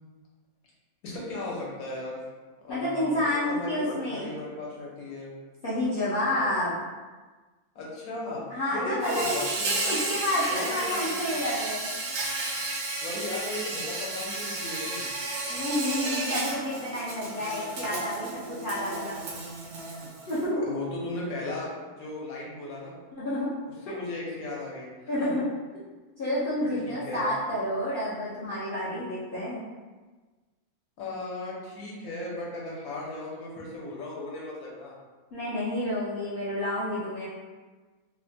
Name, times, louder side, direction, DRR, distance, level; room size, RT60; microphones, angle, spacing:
voice 1, 1.0-2.2 2.6-5.3 6.3-6.5 7.7-8.4 8.7-10.1 10.5-11.3 13.0-15.1 20.6-21.7 22.0-22.9 23.9-24.9 25.2-25.4 26.6-27.2 31.0-34.9, left 2 dB, 75° left, -5 dB, 1.2 m, -36 dB
voice 2, 2.7-4.4 5.6-6.7 8.5-9.4 9.7-11.9 15.5-19.2 20.3-20.7 23.1-23.5 23.9-24.0 25.1-25.4 26.2-29.6 35.3-37.3, left 1 dB, 55° left, -11 dB, 0.6 m, -29 dB
Insect, 9.0-20.4, right 2 dB, 75° right, 1.1 m, -33 dB
3.2 x 2.1 x 2.6 m, 1.3 s
omnidirectional pair, 1.6 m